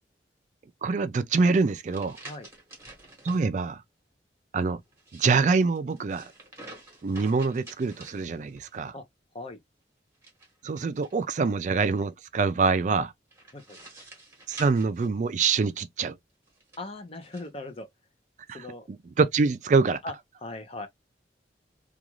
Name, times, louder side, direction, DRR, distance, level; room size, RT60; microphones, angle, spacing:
voice 1, 0.8-2.2 3.2-3.8 4.5-4.8 5.1-6.3 7.0-8.9 10.6-13.1 14.5-16.2 18.5-20.0, right 4 dB, 40° right, 0.3 m, -25 dB
sound 1, 1.4-3.5 4.9-8.8 10.1-11.5 13.3-15.7 16.5-17.5, right 2 dB, 15° right, 1.1 m, -49 dB
voice 2, 16.8-17.9 18.5-18.9 20.0-20.1 20.4-20.9, left 2 dB, 30° left, 0.6 m, -39 dB
2.4 x 2.3 x 2.9 m
head